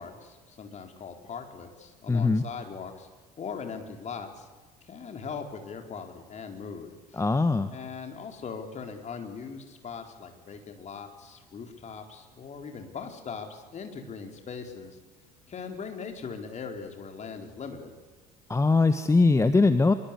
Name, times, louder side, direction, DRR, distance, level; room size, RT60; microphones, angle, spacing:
voice 1, 0.0-3.1 3.4-4.5 4.8-7.2 7.7-15.0 15.5-17.9, left 5 dB, 35° left, 4 dB, 4.2 m, -40 dB
voice 2, 2.1-2.4 7.2-7.7 18.5-19.9, left 3 dB, 15° left, 11 dB, 1.3 m, -21 dB
25.0 x 23.0 x 8.5 m, 1.3 s
figure-of-eight pair, 60°, 20 cm